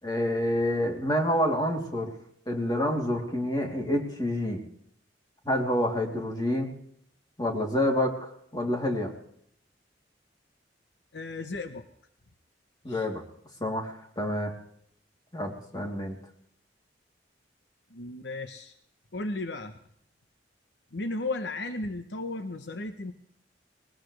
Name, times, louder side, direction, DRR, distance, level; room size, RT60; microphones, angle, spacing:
voice 1, 0.0-2.1 2.5-4.6 5.4-6.7 7.4-9.1 12.8-13.2 13.6-14.5 15.3-16.1, left 1 dB, 25° left, 0 dB, 3.1 m, -28 dB
voice 2, 11.1-11.9 12.9-13.1 17.9-18.7 19.1-19.8 20.9-23.1, left 2 dB, 70° left, 8 dB, 1.0 m, -35 dB
20.5 x 20.5 x 3.3 m, 0.70 s
head